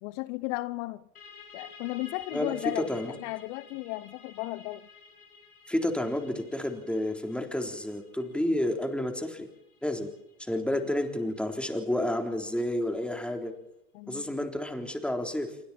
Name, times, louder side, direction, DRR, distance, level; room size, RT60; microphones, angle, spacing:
voice 1, 0.0-1.0 1.5-4.9 13.9-14.3, left 19 dB, 60° left, 0.9 m, -35 dB
sound 1, 1.2-12.5, left 5 dB, 85° left, 4.3 m, -53 dB
voice 2, 2.3-3.2 5.7-9.5 9.8-10.1 10.4-13.5 14.1-15.5, left 1 dB, ahead, 3.8 m, -30 dB
27.0 x 23.5 x 4.4 m
hypercardioid pair, 85°, 43 cm